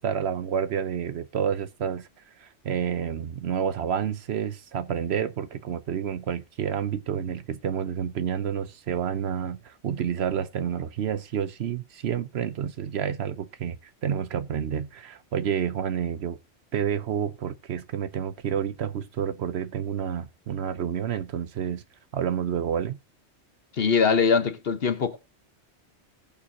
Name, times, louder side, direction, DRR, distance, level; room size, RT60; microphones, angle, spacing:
voice 1, 0.0-2.1 2.4-13.8 14.0-16.4 16.7-21.8 22.1-23.0, right 8 dB, 70° right, 0.9 m, -29 dB
voice 2, 23.8-25.2, left 5 dB, 60° left, 1.2 m, -22 dB
20.0 x 7.1 x 2.8 m
omnidirectional pair, 1.2 m